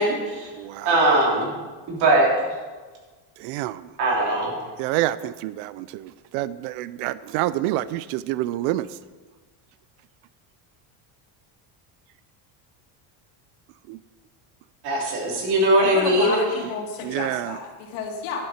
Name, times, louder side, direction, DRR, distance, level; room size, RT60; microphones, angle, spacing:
voice 1, 0.0-0.5 0.8-1.5 1.9-2.4 4.0-4.5 14.8-16.4, right 1 dB, 50° right, -2 dB, 3.4 m, -20 dB
voice 2, 0.6-0.9 3.4-3.8 4.8-8.9 13.9-14.0 17.0-17.6, right 15 dB, 85° right, 17 dB, 0.6 m, -27 dB
voice 3, 15.8-18.4, left 5 dB, 85° left, 1 dB, 2.6 m, -31 dB
11.5 x 11.0 x 4.4 m, 1.4 s
cardioid pair, 170°, 49 cm